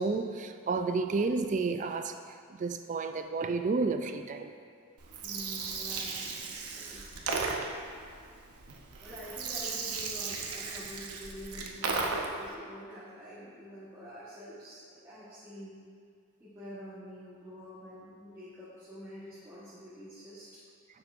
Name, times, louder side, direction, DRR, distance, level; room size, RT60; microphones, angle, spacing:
voice 1, 0.0-2.1 2.6-4.5, right 4 dB, 35° right, 8 dB, 0.3 m, -31 dB
Gurgling, 5.0-12.5, right 4 dB, 85° right, 0.8 m, -36 dB
voice 2, 5.2-8.0 9.0-15.8 16.4-20.6, equal, 15° right, -12 dB, 1.3 m, -47 dB
9.5 x 7.3 x 2.5 m, 2.1 s
head